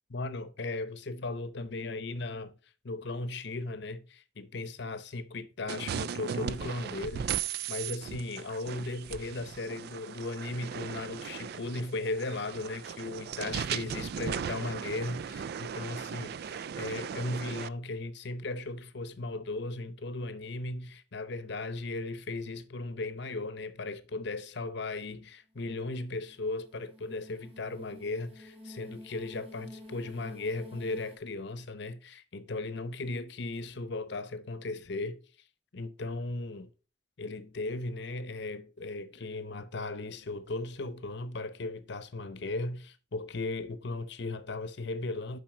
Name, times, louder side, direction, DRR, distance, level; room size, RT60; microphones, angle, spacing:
voice 1, 0.1-2.5 2.8-35.2 35.7-36.7 37.2-45.4, left 2 dB, 60° left, 0.8 m, -37 dB
sound 1, 5.7-17.7, right 8 dB, 55° right, 0.3 m, -37 dB
sound 2, 25.7-31.2, left 1 dB, 30° right, 1.9 m, -50 dB
7.5 x 5.4 x 4.9 m
head